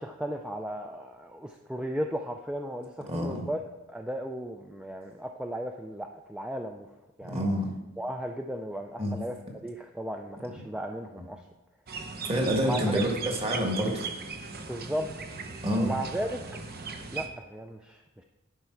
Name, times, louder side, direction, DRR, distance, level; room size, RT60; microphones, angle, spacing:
voice 1, 0.0-3.6 3.9-6.9 7.2-7.5 8.0-9.4 9.6-11.4 12.6-12.8 14.5-15.1 15.8-16.3 17.1-18.2, equal, 5° right, 4 dB, 0.3 m, -35 dB
voice 2, 7.3-7.7 9.0-9.2 12.3-14.1 15.6-15.9, equal, 25° right, 1 dB, 1.6 m, -27 dB
sound 1, 11.9-17.3, right 4 dB, 45° right, 0.8 m, -38 dB
11.0 x 4.8 x 4.6 m, 1.1 s
head